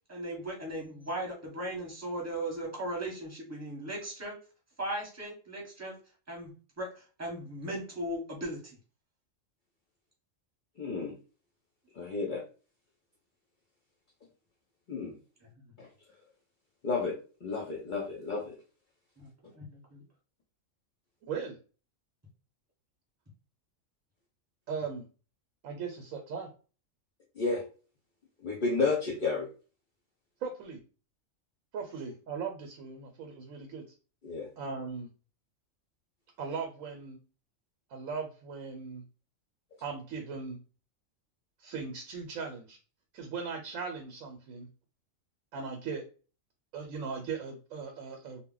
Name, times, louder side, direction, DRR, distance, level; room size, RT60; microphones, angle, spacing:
voice 1, 0.1-4.4 4.8-6.0 6.3-6.5 6.8-8.8 19.2-19.3 19.6-20.0, right 1 dB, 15° right, -2 dB, 0.9 m, -37 dB
voice 2, 10.8-11.1 12.0-12.4 14.9-15.1 15.8-15.9 16.8-17.1 17.4-18.5 27.4-27.6 28.4-29.5 34.2-34.5, left 4 dB, 55° left, -1 dB, 0.6 m, -31 dB
voice 3, 21.3-21.6 24.7-25.0 25.6-26.5 30.4-30.8 31.7-33.8 34.6-35.1 36.4-37.2 37.9-39.0 39.8-40.6 41.6-42.8 43.1-44.7 45.5-46.0 46.7-48.4, right 5 dB, 85° right, 3 dB, 1.0 m, -38 dB
2.2 x 2.1 x 3.7 m, 0.36 s
omnidirectional pair, 1.4 m